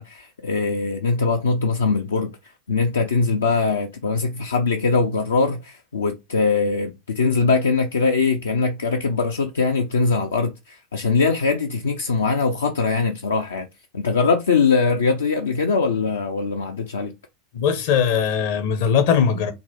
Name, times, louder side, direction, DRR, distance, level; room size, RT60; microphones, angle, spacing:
voice 1, 0.0-2.3 2.7-13.7 13.9-17.1, left 4 dB, 75° left, 0.4 m, -21 dB
voice 2, 17.5-19.5, left 7 dB, 60° left, 0.7 m, -20 dB
3.9 x 2.1 x 2.9 m
figure-of-eight pair, 85°, 0 cm